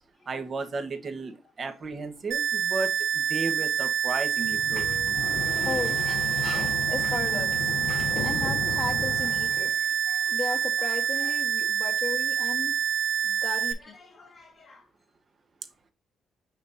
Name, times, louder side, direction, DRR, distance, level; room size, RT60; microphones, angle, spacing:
voice 1, 0.3-4.9, right 3 dB, 40° right, 1.3 m, -34 dB
sound 1, 2.3-13.7, right 8 dB, 85° right, 1.6 m, -27 dB
Sliding door, 4.4-9.7, left 5 dB, 70° left, 1.3 m, -34 dB
voice 2, 5.6-6.0 6.9-7.7 8.2-12.7 13.2-14.8, left 4 dB, 45° left, 1.4 m, -36 dB
6.0 x 6.0 x 2.7 m
cardioid pair, 90°, 0 cm